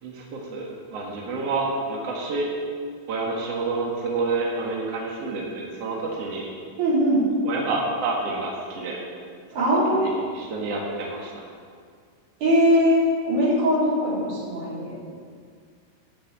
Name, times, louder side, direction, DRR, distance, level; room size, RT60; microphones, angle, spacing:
voice 1, 0.0-2.5 3.1-6.5 7.4-9.0 9.6-11.3, right 3 dB, 65° right, -3 dB, 1.5 m, -29 dB
voice 2, 6.8-7.2 9.5-10.2 12.4-14.9, equal, 45° right, -9 dB, 4.8 m, -21 dB
9.9 x 7.4 x 8.6 m, 2.1 s
omnidirectional pair, 5.3 m